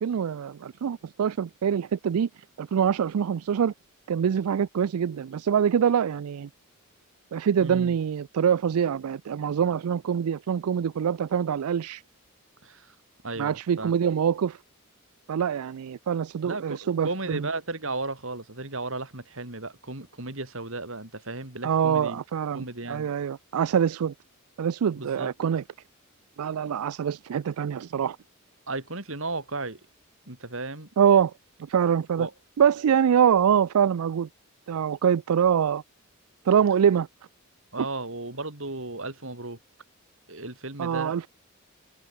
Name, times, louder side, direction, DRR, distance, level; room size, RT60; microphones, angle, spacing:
voice 1, 0.0-2.3 2.6-3.7 4.1-6.5 7.3-12.0 13.4-14.6 15.3-17.4 21.6-24.1 24.6-25.6 26.4-28.2 31.0-31.3 31.7-32.3 32.6-34.3 34.7-35.8 36.5-37.1 40.8-41.3, right 8 dB, 85° right, 0.4 m, -24 dB
voice 2, 7.6-8.0 12.6-13.0 13.2-13.9 16.4-22.2 22.5-23.1 25.0-25.3 28.7-29.8 30.3-30.9 32.2-32.3 37.7-39.6 40.3-41.2, right 2 dB, 65° right, 3.5 m, -35 dB
head